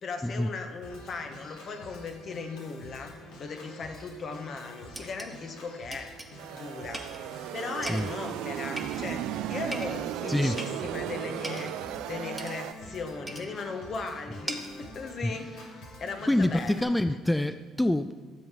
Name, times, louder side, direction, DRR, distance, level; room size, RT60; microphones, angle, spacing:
voice 1, 0.0-6.2 6.5-11.7 12.1-16.9, left 4 dB, 50° left, 6 dB, 1.4 m, -38 dB
Organ, 0.8-16.8, left 1 dB, 75° left, 2.4 m, -47 dB
sound 1, 4.2-4.3 5.0-5.4 5.9-6.3 6.9-7.2 7.9-8.2 8.8-9.2 9.7-10.0 10.6-10.8 11.4-11.8 12.4-12.6 13.3-13.5 14.5-14.8, right 1 dB, 10° right, 1.3 m, -39 dB
sound 2, 6.4-12.7, right 13 dB, 75° right, 0.3 m, -35 dB
voice 2, 16.3-18.1, left 1 dB, 10° left, 11 dB, 0.4 m, -26 dB
13.5 x 7.5 x 5.7 m, 1.5 s
supercardioid pair, 70°, 0 cm